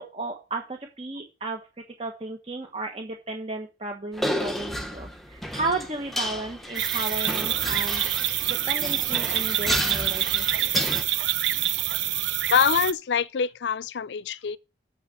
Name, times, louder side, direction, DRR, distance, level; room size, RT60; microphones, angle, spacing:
voice 1, 0.0-1.6 2.0-10.7, right 2 dB, 35° right, 1.2 m, -34 dB
sound 1, 4.1-11.0, equal, ahead, 1.0 m, -32 dB
sound 2, 6.8-12.9, right 13 dB, 70° right, 0.5 m, -26 dB
voice 2, 12.5-14.6, left 7 dB, 65° left, 0.4 m, -24 dB
7.4 x 6.4 x 6.5 m
head